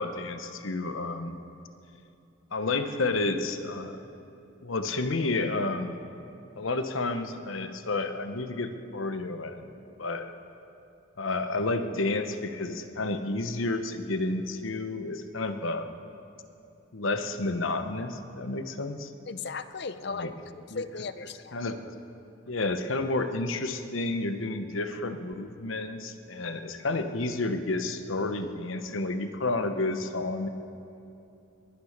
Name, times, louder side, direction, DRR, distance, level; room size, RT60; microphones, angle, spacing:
voice 1, 0.0-1.4 2.5-4.0 4.6-6.0 6.6-9.6 10.0-10.3 11.2-15.9 16.9-19.1 20.1-20.3 20.7-20.8 21.5-21.9 22.5-30.5, left 2 dB, 85° left, 8 dB, 1.0 m, -30 dB
voice 2, 19.2-21.6, left 4 dB, 55° left, 12 dB, 0.6 m, -37 dB
21.5 x 9.7 x 6.6 m, 2.7 s
head